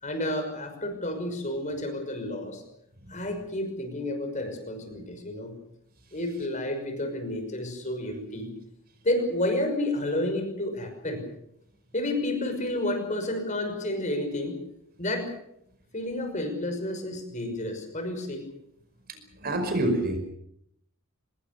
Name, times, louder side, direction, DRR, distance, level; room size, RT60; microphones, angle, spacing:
voice 1, 0.0-2.6 3.1-5.5 6.1-8.5 9.0-11.2 11.9-14.6 15.0-15.3 15.9-18.4, left 1 dB, 35° left, 6 dB, 5.8 m, -30 dB
voice 2, 19.1-20.2, right 1 dB, 45° right, 7 dB, 5.3 m, -27 dB
25.0 x 21.5 x 6.8 m, 0.75 s
head